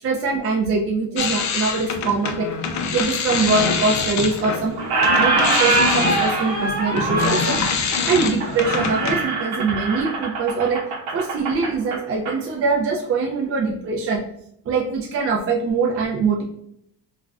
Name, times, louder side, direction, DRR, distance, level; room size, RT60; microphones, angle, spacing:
voice 1, 0.0-2.5 2.9-4.8 5.2-7.6 8.0-10.8 11.1-14.2 14.7-16.4, right 4 dB, 35° right, -2 dB, 0.4 m, -23 dB
sound 1, 1.2-4.7 5.0-9.3, left 5 dB, 45° left, 0.4 m, -25 dB
Squeak, 3.9-4.5 4.8-12.4, right 3 dB, 85° right, 1.0 m, -23 dB
3.4 x 2.1 x 2.4 m, 0.73 s
cardioid pair, 140°, 43 cm